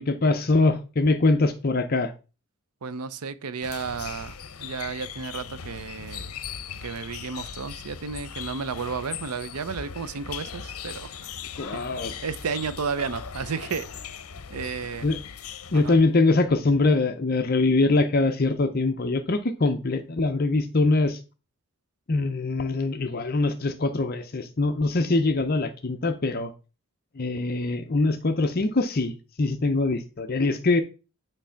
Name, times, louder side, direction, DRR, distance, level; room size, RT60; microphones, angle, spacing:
voice 1, 0.0-2.1 11.6-12.1 15.0-15.2 15.7-21.2 22.1-26.5 27.2-30.8, left 3 dB, 40° left, 0.6 m, -23 dB
voice 2, 2.8-4.3 4.6-6.3 6.8-11.1 11.7-11.8 12.2-13.9 14.5-15.1 15.7-16.0, right 5 dB, 90° right, 0.6 m, -32 dB
sound 1, 3.6-16.1, left 7 dB, 80° left, 0.7 m, -39 dB
8.8 x 3.3 x 5.7 m
head